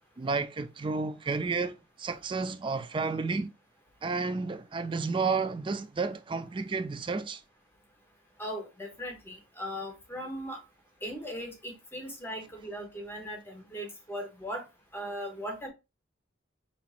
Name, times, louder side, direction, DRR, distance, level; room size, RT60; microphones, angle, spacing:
voice 1, 0.2-3.5 4.0-7.4, right 4 dB, 25° right, 0.4 m, -31 dB
voice 2, 8.4-10.6 11.0-14.6 14.9-15.7, equal, 10° left, 1.0 m, -38 dB
5.5 x 2.9 x 2.5 m
head